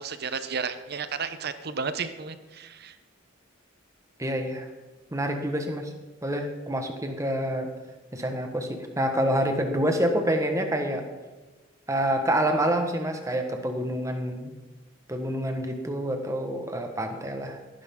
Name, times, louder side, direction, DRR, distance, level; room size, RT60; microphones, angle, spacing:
voice 1, 0.0-2.9, right 5 dB, 55° right, 11 dB, 0.9 m, -33 dB
voice 2, 4.2-4.7 5.1-5.9 6.2-7.7 8.1-11.1 11.9-14.5 15.1-17.6, right 1 dB, 15° right, 4 dB, 1.4 m, -27 dB
17.0 x 10.5 x 3.8 m, 1.2 s
head